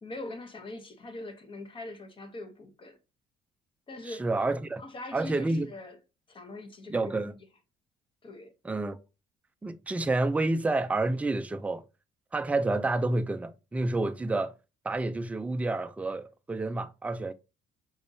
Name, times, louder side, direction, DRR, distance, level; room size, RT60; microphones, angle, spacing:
voice 1, 0.0-3.0 3.9-4.3 4.8-6.0 6.3-7.3 8.2-8.5, left 2 dB, 30° left, 0.9 m, -42 dB
voice 2, 4.0-4.8 5.1-5.7 6.9-7.3 8.6-9.0 9.6-11.8 12.3-14.5 14.8-17.3, right 2 dB, 10° right, 0.3 m, -29 dB
5.1 x 3.4 x 2.6 m
cardioid pair, 110°, 17 cm